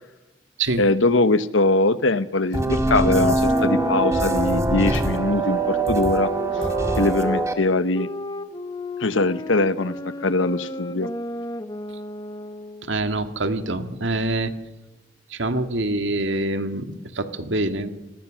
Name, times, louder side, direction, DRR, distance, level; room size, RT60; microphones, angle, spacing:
voice 1, 0.8-6.3 7.0-8.1 9.0-10.0 10.2-11.1, left 2 dB, 80° left, 13 dB, 1.1 m, -21 dB
sound 1, 2.5-7.5, right 2 dB, 15° right, 1.8 m, -23 dB
sound 2, 2.8-7.5 7.9-12.9, left 1 dB, 20° left, 1.0 m, -33 dB
voice 2, 12.8-14.5 15.3-17.9, right 2 dB, 70° right, 8 dB, 1.9 m, -25 dB
29.0 x 20.5 x 6.4 m, 1.0 s
head